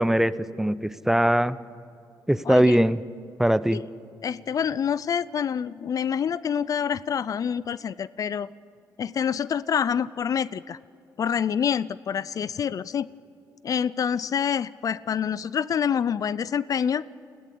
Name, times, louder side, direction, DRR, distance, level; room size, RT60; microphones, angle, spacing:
voice 1, 0.0-1.6 2.3-3.0 3.4-3.8, right 1 dB, 5° right, 16 dB, 0.6 m, -21 dB
voice 2, 2.5-2.8 3.7-3.8 4.2-8.5 9.0-10.8 11.2-13.1 13.6-17.0, left 8 dB, 50° left, 19 dB, 0.4 m, -27 dB
21.0 x 16.0 x 8.4 m, 2.5 s
cardioid pair, 90°, 8 cm